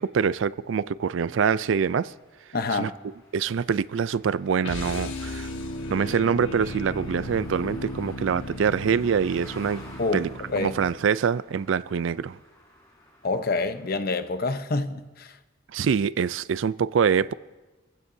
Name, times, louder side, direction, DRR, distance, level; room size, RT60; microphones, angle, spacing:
voice 1, 0.0-2.1 2.7-2.9 3.3-5.5 5.9-9.8 10.1-10.3 10.6-12.4 15.7-17.3, right 6 dB, 70° right, 0.4 m, -25 dB
passing cars, 1.6-14.5, left 1 dB, 20° left, 4.2 m, -51 dB
voice 2, 2.5-2.9 10.0-10.8 13.2-15.4, left 3 dB, 50° left, 0.8 m, -27 dB
sound 1, 4.6-11.1, left 1 dB, 70° left, 1.3 m, -36 dB
26.5 x 15.5 x 2.7 m
head